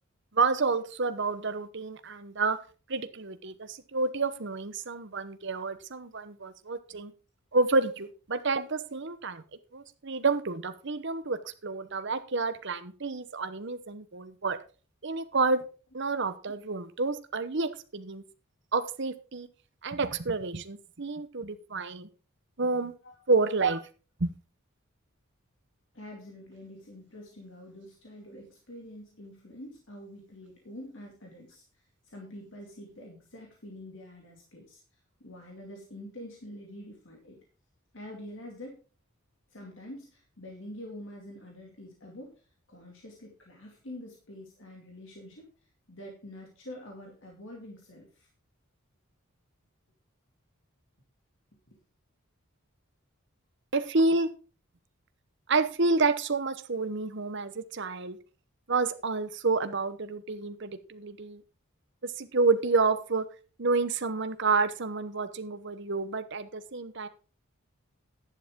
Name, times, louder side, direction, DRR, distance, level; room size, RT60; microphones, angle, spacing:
voice 1, 0.3-2.6 2.9-7.1 7.5-9.4 9.7-14.6 15.0-15.6 15.9-18.2 18.7-19.5 19.8-22.1 22.6-22.9 23.3-23.8 24.2-24.3 53.7-54.3 55.5-58.2 58.7-61.4 62.0-63.2 63.6-67.1, right 3 dB, 55° right, 11 dB, 0.9 m, -29 dB
voice 2, 25.9-34.8 35.2-37.4 37.9-38.8 39.5-48.3 51.7-51.8, left 1 dB, 60° left, 0 dB, 2.4 m, -46 dB
11.5 x 9.9 x 3.7 m, 0.36 s
head